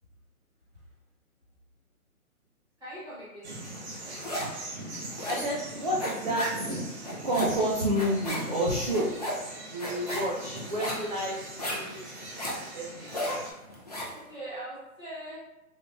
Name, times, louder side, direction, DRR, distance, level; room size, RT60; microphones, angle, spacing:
voice 1, 2.8-3.5 8.9-9.3 9.9-10.2 14.1-15.4, right 1 dB, 10° right, -10 dB, 1.2 m, -42 dB
sound 1, 3.4-13.5, right 1 dB, 50° right, 1.0 m, -40 dB
sound 2, 3.7-4.6 4.9-14.2, equal, 30° left, 0.4 m, -35 dB
voice 2, 5.3-6.8 7.2-9.1 9.7-12.3 12.7-13.1, equal, 35° right, -5 dB, 0.4 m, -30 dB
3.8 x 3.1 x 2.4 m, 0.92 s
figure-of-eight pair, 145°, 43 cm